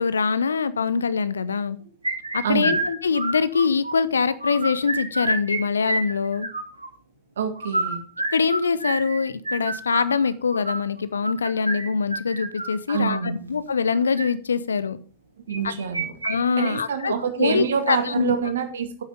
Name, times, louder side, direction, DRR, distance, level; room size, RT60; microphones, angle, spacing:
voice 1, 0.0-1.8 2.3-6.5 8.3-15.0 15.6-15.7 16.2-18.3, left 5 dB, 70° left, 16 dB, 0.8 m, -24 dB
sound 1, 2.0-3.9 4.3-5.6 5.8-6.9 7.6-13.2 13.9-14.3 15.5-16.3 16.6-16.7 17.1-17.2 17.8-18.2, right 2 dB, 80° right, 2.5 m, -28 dB
voice 2, 2.4-2.8 7.4-8.0 12.9-13.5 15.5-16.1 16.6-19.0, right 7 dB, 65° right, 8 dB, 2.0 m, -26 dB
9.2 x 9.1 x 5.3 m, 0.38 s
figure-of-eight pair, 90°, 0 cm